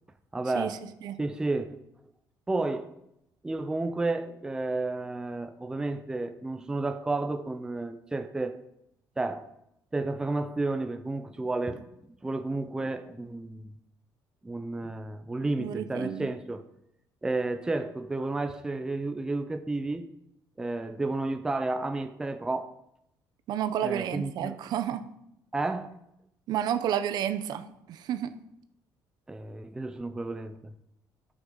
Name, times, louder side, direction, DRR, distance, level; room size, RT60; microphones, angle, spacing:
voice 1, 0.3-0.8 1.2-1.8 2.5-2.9 3.4-8.6 9.2-9.5 9.9-11.9 12.2-13.7 14.4-16.7 17.2-20.1 20.6-22.7 23.8-24.6 25.5-25.9 29.3-30.7, right 2 dB, 10° right, 0.5 m, -31 dB
voice 2, 15.6-16.3 23.5-25.0 26.5-27.6 27.9-28.3, right 10 dB, 65° right, 0.7 m, -30 dB
10.0 x 6.1 x 5.4 m
cardioid pair, 145°, 8 cm